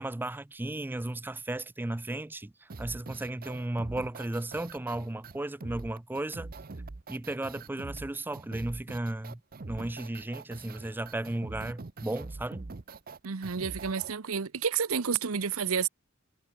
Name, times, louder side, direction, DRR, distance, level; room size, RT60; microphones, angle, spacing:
voice 1, 0.0-6.5 7.1-9.4 9.7-12.7, right 1 dB, 10° right, 0.4 m, -35 dB
sound 1, 2.7-14.1, right 3 dB, 45° right, 0.8 m, -43 dB
voice 2, 13.2-15.9, right 6 dB, 90° right, 0.9 m, -30 dB
head